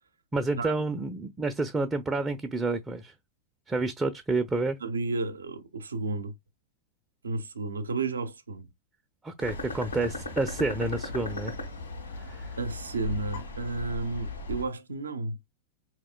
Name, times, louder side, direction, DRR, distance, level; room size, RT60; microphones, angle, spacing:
voice 1, 0.3-3.1 3.7-4.8 9.2-11.5 12.2-12.5, right 3 dB, 15° right, 0.5 m, -29 dB
voice 2, 4.8-6.3 7.2-8.7 12.6-15.4, right 3 dB, 75° right, 0.6 m, -32 dB
sound 1, 9.4-14.6, left 3 dB, 75° left, 1.3 m, -37 dB
4.8 x 3.0 x 2.2 m
figure-of-eight pair, 90°, 0 cm